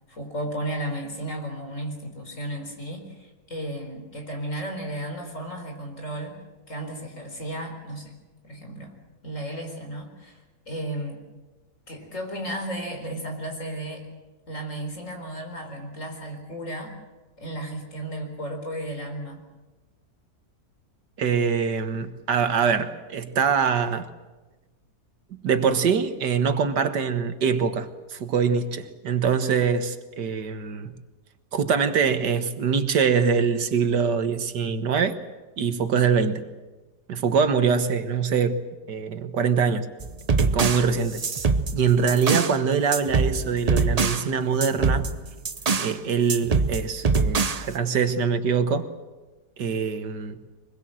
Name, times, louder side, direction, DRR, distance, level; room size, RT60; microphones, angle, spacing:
voice 1, 0.1-8.2 8.4-9.0 9.2-11.2 11.9-14.1 14.5-17.0 17.4-19.4, right 1 dB, 45° left, 4.7 m, -34 dB
voice 2, 21.2-24.1 25.4-30.9 31.5-35.2 35.6-36.4 37.1-38.6 38.9-39.9 40.4-41.2 41.7-45.1 45.8-48.9 49.6-50.4, right 6 dB, 85° right, 2.0 m, -23 dB
sound 1, 40.0-42.6 42.9-44.3 44.6-46.0 46.3-47.7, right 4 dB, 35° right, 0.6 m, -24 dB
24.5 x 21.0 x 7.7 m
omnidirectional pair, 1.8 m